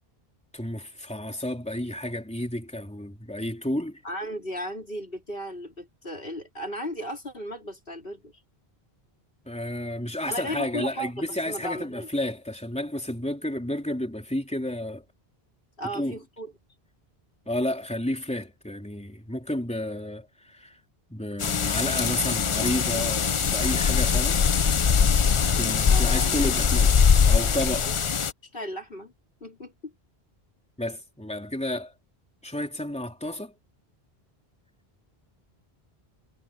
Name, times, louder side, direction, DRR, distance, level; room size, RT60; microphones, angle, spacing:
voice 1, 0.5-4.0 9.4-15.0 15.9-16.1 17.5-20.8 21.1-24.4 25.5-26.9 27.3-27.9 30.8-31.9 32.4-33.5, left 1 dB, 5° left, 3.5 m, -31 dB
voice 2, 4.0-8.3 10.3-12.1 15.8-16.5 25.9-26.5 27.8-28.0 28.4-29.1 29.4-29.9, equal, 60° left, 4.0 m, -36 dB
sound 1, 21.4-28.3, left 6 dB, 40° left, 0.5 m, -22 dB
omnidirectional pair, 1.0 m